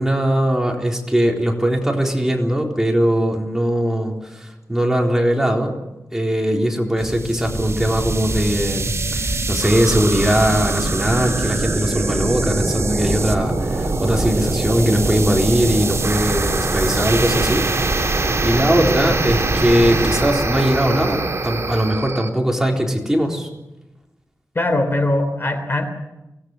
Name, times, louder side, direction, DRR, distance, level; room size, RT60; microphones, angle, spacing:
voice 1, 0.0-5.8 6.1-23.5, equal, 5° right, 0 dB, 3.9 m, -20 dB
sound 1, 7.0-22.3, right 2 dB, 45° right, 3.0 m, -22 dB
voice 2, 24.5-25.9, left 1 dB, 40° left, 7 dB, 3.3 m, -20 dB
25.0 x 18.5 x 8.0 m, 0.95 s
wide cardioid pair, 100°, 6 cm